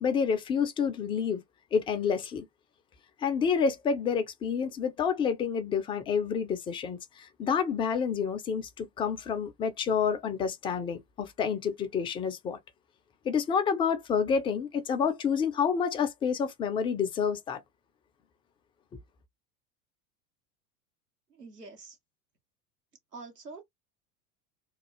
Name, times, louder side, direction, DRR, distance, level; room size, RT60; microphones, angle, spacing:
voice 1, 0.0-1.4 1.7-2.5 3.2-12.6 13.2-17.6, left 6 dB, 10° left, 0.4 m, -29 dB
voice 2, 21.3-22.0 23.1-23.6, right 3 dB, 90° right, 1.2 m, -45 dB
3.1 x 2.3 x 3.0 m
figure-of-eight pair, 80°, 46 cm